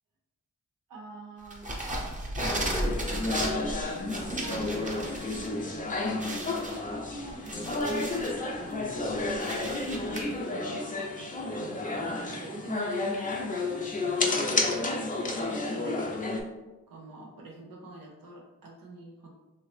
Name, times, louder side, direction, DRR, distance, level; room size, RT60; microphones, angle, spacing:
voice 1, 0.9-1.8 2.4-6.5 6.8-11.3 11.6-15.0 15.4-16.2 16.5-19.4, right 2 dB, 90° right, -1 dB, 0.8 m, -46 dB
sound 1, 1.5-5.5 5.8-5.9 6.2-8.4 8.8-10.2, right 1 dB, 25° right, 0.8 m, -35 dB
sound 2, 2.4-16.4, left 2 dB, 25° left, 0.6 m, -31 dB
2.9 x 2.7 x 3.2 m, 1.1 s
cardioid pair, 45°, 33 cm